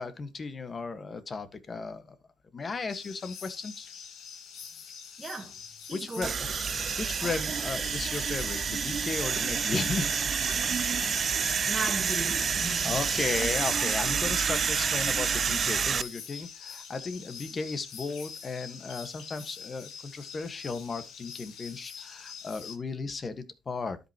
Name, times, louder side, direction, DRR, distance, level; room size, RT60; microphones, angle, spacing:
voice 1, 0.0-2.2 2.5-3.9 5.9-6.3 7.0-10.1 10.9-11.1 12.7-24.0, left 4 dB, 35° left, 1.4 m, -35 dB
sound 1, 2.9-22.8, left 7 dB, 80° left, 1.7 m, -45 dB
voice 2, 5.2-5.6 5.8-6.4 11.7-12.9, right 3 dB, 25° right, 1.5 m, -36 dB
sound 2, 6.2-16.0, right 6 dB, 45° right, 0.4 m, -28 dB
12.5 x 5.6 x 2.9 m
cardioid pair, 90°, 0 cm